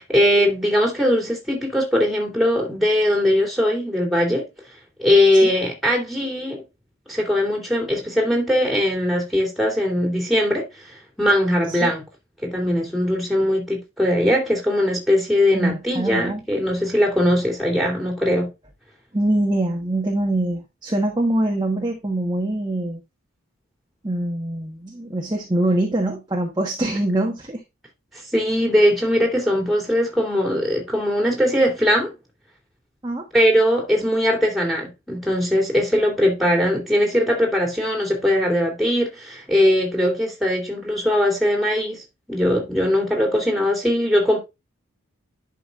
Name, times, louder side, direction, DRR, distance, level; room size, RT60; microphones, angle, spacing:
voice 1, 0.0-4.4 5.0-6.6 7.1-12.0 12.4-18.5 28.1-32.1 33.3-42.0 42.3-44.4, left 1 dB, ahead, 2.6 m, -20 dB
voice 2, 15.5-16.4 19.1-23.0 24.0-27.6 33.0-33.2, right 1 dB, 20° right, 1.3 m, -24 dB
11.0 x 5.5 x 2.5 m
head